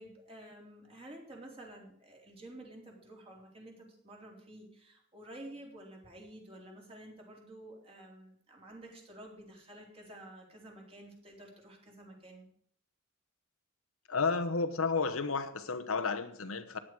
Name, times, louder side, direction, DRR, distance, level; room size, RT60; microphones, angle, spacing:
voice 1, 0.0-12.5, right 1 dB, 30° right, -1 dB, 3.8 m, -51 dB
voice 2, 14.1-16.8, left 4 dB, 80° left, 10 dB, 1.1 m, -32 dB
15.5 x 10.0 x 4.8 m, 0.63 s
head